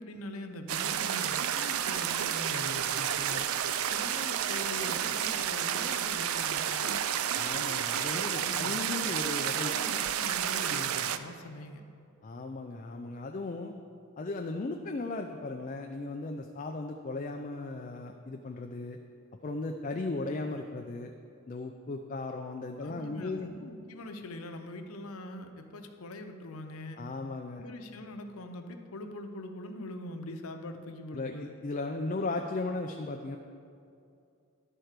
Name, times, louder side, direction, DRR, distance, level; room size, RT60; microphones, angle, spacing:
voice 1, 0.0-3.4 3.9-7.0 8.3-9.1 9.4-11.8 22.8-27.0 27.6-31.5, left 1 dB, 85° left, 5 dB, 0.8 m, -43 dB
sound 1, 0.7-11.2, right 9 dB, 80° right, 0.4 m, -31 dB
voice 2, 7.4-9.8 12.2-13.7 14.2-19.0 19.4-21.1 21.5-23.5 27.0-27.6 31.1-31.3 31.6-33.4, left 3 dB, 35° left, 4 dB, 0.4 m, -36 dB
11.0 x 4.4 x 6.6 m, 2.5 s
head